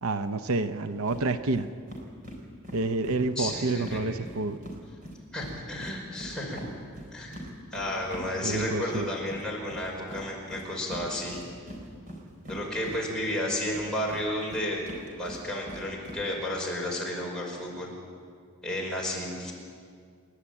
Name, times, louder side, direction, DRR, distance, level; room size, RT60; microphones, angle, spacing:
voice 1, 0.0-1.7 2.7-4.6 8.4-9.1, right 3 dB, 75° right, 10 dB, 0.7 m, -28 dB
sound 1, 1.1-1.2 1.5-1.6 1.9-4.8 5.0-13.4 13.7-16.2, equal, 35° right, 4.1 m, -43 dB
voice 2, 3.3-4.0 5.3-6.6 7.1-7.4 7.7-11.4 12.5-14.8 15.2-17.9 18.6-19.5, left 1 dB, 5° left, -4 dB, 5.1 m, -32 dB
29.0 x 11.5 x 8.8 m, 2.1 s
head